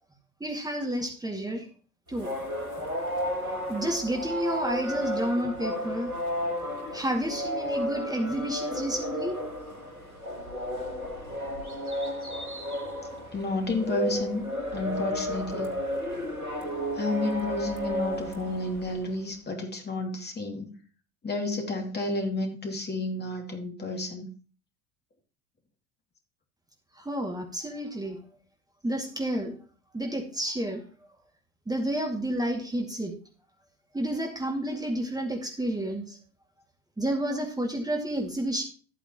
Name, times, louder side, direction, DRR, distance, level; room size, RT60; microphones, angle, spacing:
voice 1, 0.4-1.7 2.1-2.3 3.7-6.1 6.9-9.4 27.0-28.2 28.8-29.6 29.9-30.8 31.7-33.1 33.9-36.2 37.0-38.6, right 1 dB, 10° right, 1 dB, 2.2 m, -30 dB
sound 1, 2.1-19.1, equal, 85° right, 2.0 m, -33 dB
voice 2, 13.3-14.4 14.7-15.7 16.9-20.7 21.2-24.3, left 2 dB, 25° left, 2 dB, 2.7 m, -31 dB
13.5 x 8.8 x 3.0 m, 0.40 s
figure-of-eight pair, 70°, 42 cm